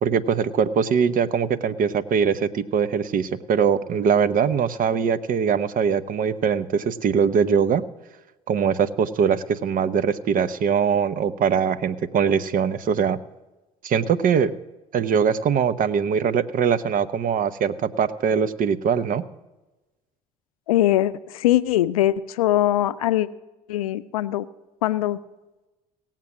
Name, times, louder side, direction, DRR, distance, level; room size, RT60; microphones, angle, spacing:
voice 1, 0.0-7.8 8.5-13.2 13.8-14.5 14.9-19.2, right 7 dB, 50° right, 15 dB, 0.8 m, -22 dB
voice 2, 20.7-23.3 23.7-24.5 24.8-25.2, left 13 dB, 90° left, 15 dB, 0.5 m, -21 dB
17.5 x 7.4 x 6.2 m, 1.1 s
hypercardioid pair, 65°, 18 cm